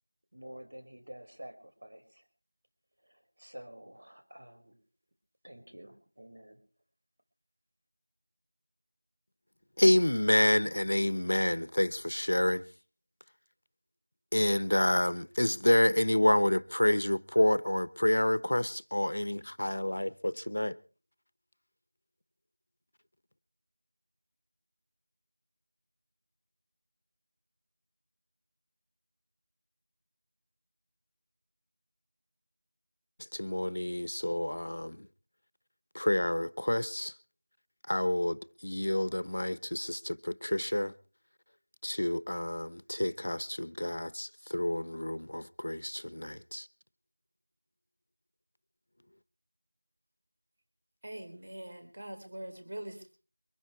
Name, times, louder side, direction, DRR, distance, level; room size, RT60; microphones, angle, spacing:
voice 1, 0.3-2.2 3.0-4.8 5.4-6.6, right 1 dB, 55° right, 4.5 m, -49 dB
voice 2, 9.8-12.7 14.3-20.8 33.3-35.1 35.9-37.1 37.9-40.9 41.8-46.7, left 1 dB, 60° left, 1.0 m, -28 dB
voice 3, 51.0-53.1, right 1 dB, 35° right, 4.2 m, -43 dB
24.0 x 10.5 x 4.8 m
figure-of-eight pair, 180°, 0 cm